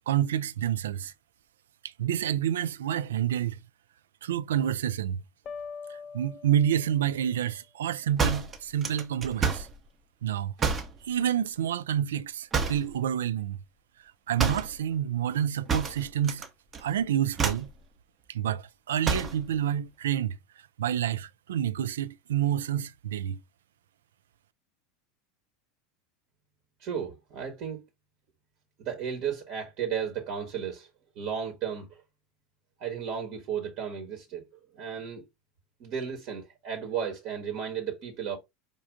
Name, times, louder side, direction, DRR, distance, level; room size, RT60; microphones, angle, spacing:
voice 1, 0.1-1.1 2.0-3.6 4.2-5.2 6.1-9.7 10.2-10.5 11.0-13.6 14.3-16.5 16.8-17.7 18.3-20.4 20.8-23.4, right 10 dB, 70° right, 0.3 m, -28 dB
sound 1, 5.5-7.3, left 5 dB, 35° left, 0.5 m, -43 dB
sound 2, 8.2-9.8 10.6-11.0 12.5-12.9 14.4-14.8 15.7-16.5 16.7-17.0 17.3-17.7 19.0-19.4, right 5 dB, 25° right, 0.8 m, -28 dB
voice 2, 26.8-27.8 28.8-30.9 31.1-32.0 32.8-34.4 34.7-35.2 35.8-38.4, right 7 dB, 50° right, 1.2 m, -34 dB
5.1 x 2.4 x 3.6 m
figure-of-eight pair, 80°, 0 cm